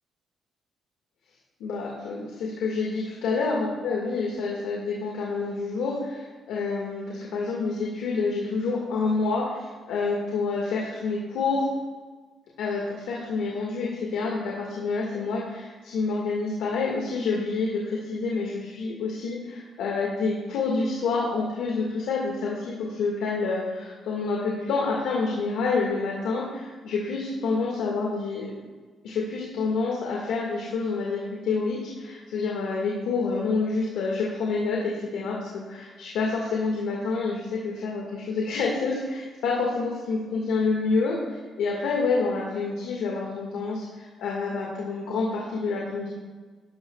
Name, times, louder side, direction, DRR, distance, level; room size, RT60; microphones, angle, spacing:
voice 1, 1.6-11.7 12.6-28.5 29.0-46.1, left 4 dB, 90° left, -3 dB, 1.8 m, -28 dB
13.0 x 12.0 x 2.4 m, 1.4 s
cardioid pair, 90°, 0 cm